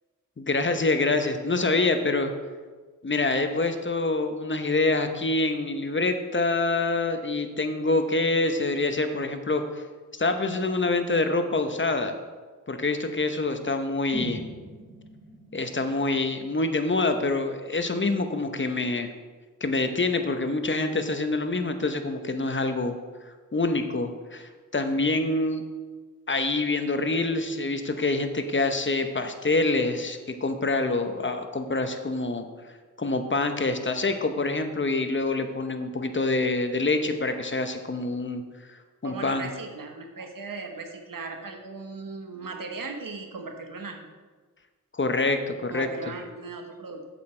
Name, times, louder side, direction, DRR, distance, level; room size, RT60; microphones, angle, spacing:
voice 1, 0.4-2.3 3.0-9.6 10.1-12.1 12.7-14.4 15.5-19.1 19.6-23.0 23.5-25.6 26.3-32.4 33.0-38.4 39.0-39.5 44.9-45.9, left 3 dB, 35° left, 7 dB, 0.8 m, -26 dB
sound 1, 14.1-18.1 18.4-18.5, right 1 dB, 25° right, 2.9 m, -42 dB
voice 2, 39.0-44.1 45.7-47.1, right 3 dB, 85° right, 4 dB, 1.1 m, -37 dB
8.0 x 7.9 x 4.4 m, 1.4 s
wide cardioid pair, 85°, 33 cm